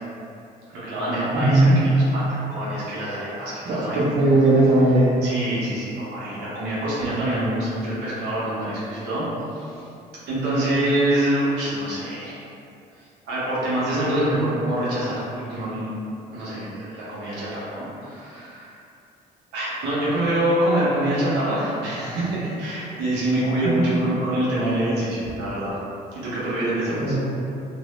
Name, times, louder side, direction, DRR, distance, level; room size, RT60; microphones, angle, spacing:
voice 1, 0.7-4.1 5.2-9.3 9.5-9.7 10.3-12.4 13.2-15.9 16.3-18.7 19.5-25.7 26.1-27.3, right 1 dB, 80° right, -9 dB, 0.9 m, -25 dB
voice 2, 1.3-1.8 3.7-5.2 26.9-27.2, right 2 dB, 55° right, -9 dB, 0.9 m, -18 dB
2.6 x 2.0 x 3.0 m, 2.6 s
cardioid pair, 110°, 17 cm